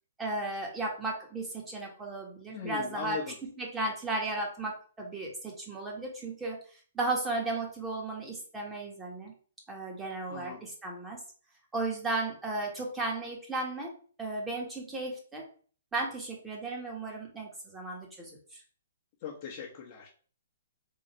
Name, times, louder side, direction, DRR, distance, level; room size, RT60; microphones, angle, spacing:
voice 1, 0.2-6.6 6.9-9.3 9.7-11.2 11.7-13.9 14.2-15.4 15.9-18.6, right 2 dB, 10° right, -1 dB, 1.5 m, -35 dB
voice 2, 2.5-3.3 10.3-10.6 19.2-20.1, left 7 dB, 40° left, -4 dB, 1.0 m, -39 dB
3.9 x 3.1 x 4.4 m, 0.43 s
hypercardioid pair, 140°, 0 cm